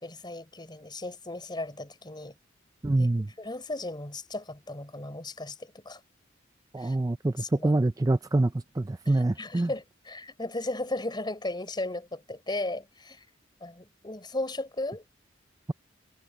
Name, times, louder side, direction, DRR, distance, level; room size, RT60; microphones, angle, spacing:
voice 1, 0.0-2.3 3.0-3.1 3.4-6.0 6.8-7.0 7.4-7.7 9.0-13.2 13.6-15.0, left 2 dB, 25° left, 4.1 m, -36 dB
voice 2, 2.8-3.3 6.7-9.7, right 2 dB, 20° right, 0.4 m, -26 dB
head